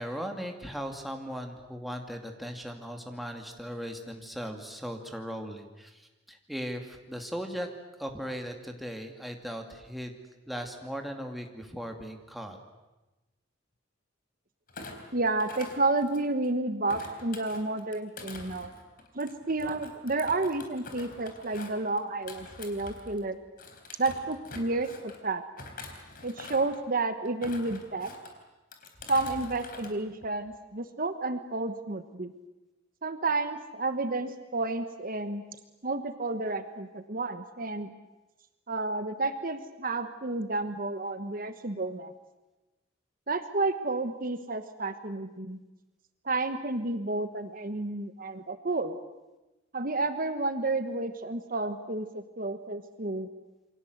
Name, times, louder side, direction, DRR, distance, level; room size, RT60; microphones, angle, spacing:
voice 1, 0.0-7.7 8.0-10.2 10.5-12.6, equal, ahead, 3 dB, 2.5 m, -38 dB
Thump thud, 14.7-16.5 16.9-23.2 23.6-25.2 25.6-26.8 27.2-28.3 28.7-29.9 30.2-30.6, left 3 dB, 50° left, 3.9 m, -46 dB
voice 2, 15.1-18.7 19.1-23.4 24.0-25.4 26.2-28.1 29.1-32.3 33.0-35.4 35.8-38.0 38.7-42.1 43.3-45.6 46.2-49.0 49.7-53.3, right 2 dB, 45° right, 9 dB, 1.2 m, -31 dB
28.0 x 24.0 x 8.0 m, 1.1 s
head